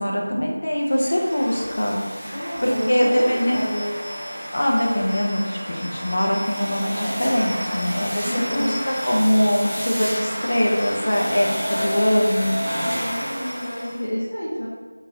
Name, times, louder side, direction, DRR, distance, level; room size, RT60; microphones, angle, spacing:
voice 1, 0.0-3.6 4.5-12.6, equal, 55° left, -1 dB, 0.7 m, -22 dB
sound 1, 0.8-14.0, equal, 10° right, 0.7 m, -30 dB
voice 2, 2.3-4.0 8.2-8.7 12.8-14.7, equal, 70° left, -9 dB, 1.1 m, -29 dB
3.7 x 2.9 x 2.8 m, 1.4 s
figure-of-eight pair, 175°, 0 cm